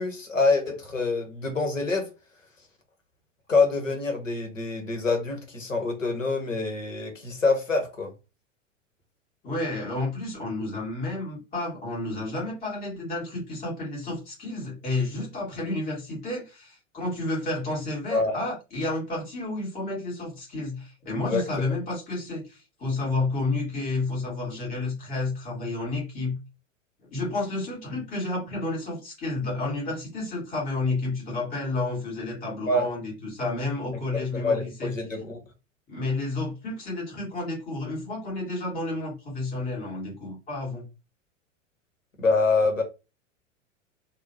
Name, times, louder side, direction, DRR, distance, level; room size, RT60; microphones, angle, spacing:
voice 1, 0.0-2.1 3.5-8.1 18.1-18.3 21.3-21.4 32.7-32.9 34.1-35.4 42.2-42.8, left 3 dB, 85° left, 1.0 m, -25 dB
voice 2, 9.4-26.4 27.1-34.9 35.9-40.8, left 2 dB, 25° left, 1.9 m, -31 dB
3.6 x 2.2 x 2.7 m
figure-of-eight pair, 90°, 38 cm